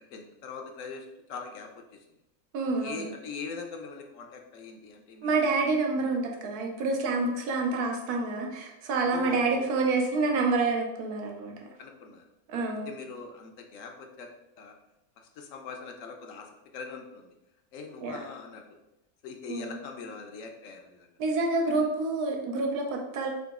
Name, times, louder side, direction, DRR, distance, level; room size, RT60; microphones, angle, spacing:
voice 1, 0.0-2.0 2.8-5.6 9.0-9.7 11.8-12.2 12.9-14.3 14.6-14.7 15.4-17.3 17.7-18.6 19.2-21.1 21.7-21.9, left 4 dB, 65° left, 3 dB, 0.9 m, -41 dB
voice 2, 2.5-3.0 5.2-11.6 12.5-12.9 18.0-18.2 19.5-19.8 21.2-23.3, right 3 dB, 90° right, 1 dB, 1.2 m, -28 dB
4.0 x 2.8 x 3.5 m, 0.90 s
omnidirectional pair, 1.6 m